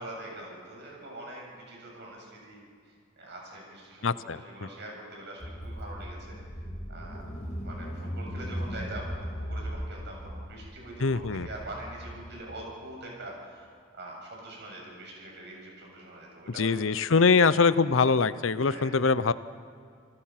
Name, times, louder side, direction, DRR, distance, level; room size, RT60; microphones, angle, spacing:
voice 1, 0.0-6.4 6.9-7.2 7.6-16.8 17.1-17.6 18.6-18.9, right 1 dB, 60° right, -1 dB, 7.6 m, -44 dB
voice 2, 4.0-4.7 11.0-11.5 16.6-19.3, left 4 dB, 75° left, 15 dB, 0.7 m, -23 dB
Car / Engine, 5.4-12.4, equal, 35° left, 2.8 m, -38 dB
29.0 x 19.0 x 5.9 m, 2.2 s
head